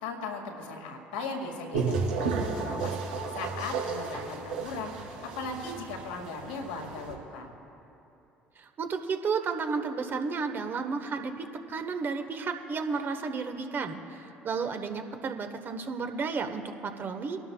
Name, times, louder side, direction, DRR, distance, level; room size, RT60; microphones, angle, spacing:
voice 1, 0.0-3.0 3.3-7.5, left 3 dB, 80° left, 2 dB, 2.0 m, -38 dB
sound 1, 1.7-7.1, right 4 dB, 85° right, 3.0 m, -33 dB
voice 2, 8.6-17.4, right 5 dB, 45° right, 6 dB, 1.2 m, -32 dB
24.5 x 12.0 x 2.3 m, 2.8 s
hypercardioid pair, 60°, 5 cm